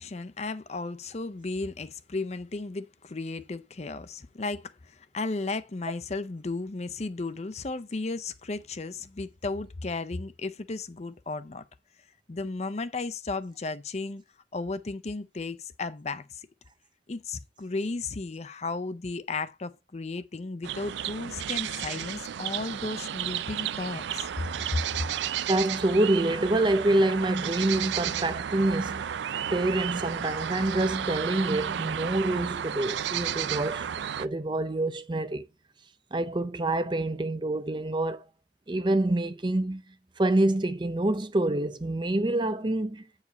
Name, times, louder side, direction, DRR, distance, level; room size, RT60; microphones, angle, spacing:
voice 1, 0.0-11.6 12.3-14.2 14.5-16.5 17.1-24.3 25.0-25.1, left 3 dB, 35° left, 0.5 m, -34 dB
sound 1, 20.6-34.3, right 9 dB, 70° right, 0.4 m, -33 dB
voice 2, 25.5-29.1 29.5-33.9 34.2-35.4 36.1-38.2 38.7-39.8 40.2-43.1, right 1 dB, 25° right, 0.6 m, -26 dB
8.5 x 4.9 x 4.0 m
head